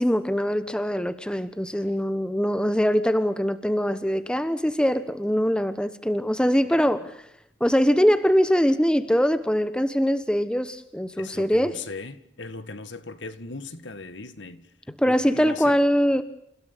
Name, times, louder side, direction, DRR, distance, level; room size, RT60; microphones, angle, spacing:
voice 1, 0.0-7.1 7.6-11.7 15.0-16.2, equal, 5° left, 1.2 m, -22 dB
voice 2, 6.7-7.0 11.2-15.8, left 3 dB, 70° left, 1.9 m, -39 dB
29.5 x 17.0 x 8.6 m
head